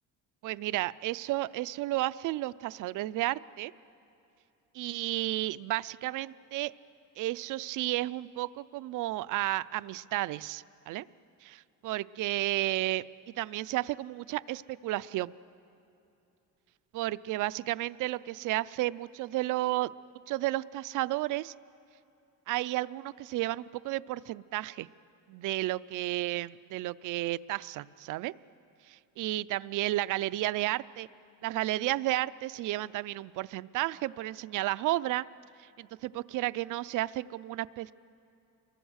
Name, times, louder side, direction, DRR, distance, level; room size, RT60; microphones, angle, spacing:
voice 1, 0.4-3.7 4.7-6.7 7.2-11.0 11.4-11.5 11.8-13.0 13.4-15.3 16.9-19.9 20.3-21.5 22.5-24.9 25.3-28.3 28.9-31.1 31.4-35.2 35.8-37.9, right 17 dB, 65° right, 17 dB, 0.5 m, -32 dB
29.0 x 23.0 x 6.4 m, 2.8 s
cardioid pair, 180°, 34 cm